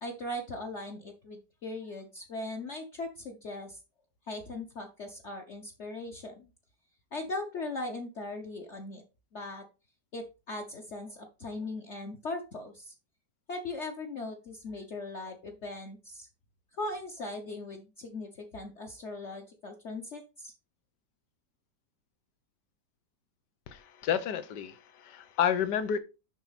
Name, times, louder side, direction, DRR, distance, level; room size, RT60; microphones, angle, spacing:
voice 1, 0.0-3.8 4.3-6.5 7.1-9.0 9.3-9.6 10.1-12.9 13.5-16.3 16.7-20.5, left 2 dB, 45° left, 1.2 m, -39 dB
voice 2, 23.7-26.0, left 8 dB, 80° left, 1.5 m, -30 dB
7.1 x 5.9 x 4.1 m
omnidirectional pair, 1.8 m